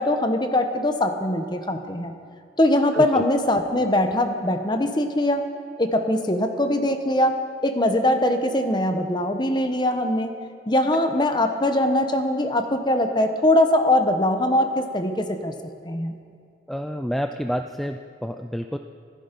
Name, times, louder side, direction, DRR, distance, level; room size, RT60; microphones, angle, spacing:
voice 1, 0.0-2.1 2.6-5.4 5.8-7.4 7.6-10.3 10.7-15.5 15.8-16.1, left 1 dB, 25° left, 6 dB, 1.0 m, -22 dB
voice 2, 16.7-18.8, equal, ahead, 6 dB, 0.4 m, -29 dB
25.5 x 10.0 x 5.3 m, 2.4 s
head